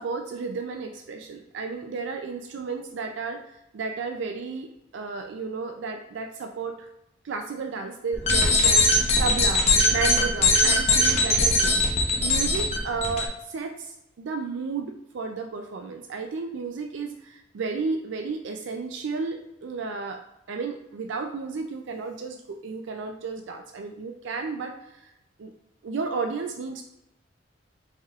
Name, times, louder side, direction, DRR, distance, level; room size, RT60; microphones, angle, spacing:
voice 1, 0.0-3.4 3.7-6.9 7.2-11.9 12.2-20.2 20.5-25.1 25.4-25.5 25.8-26.8, right 4 dB, 75° right, 4 dB, 0.4 m, -33 dB
sound 1, 8.1-13.2, left 2 dB, 35° left, 0.8 m, -21 dB
5.4 x 3.4 x 2.4 m, 0.87 s
head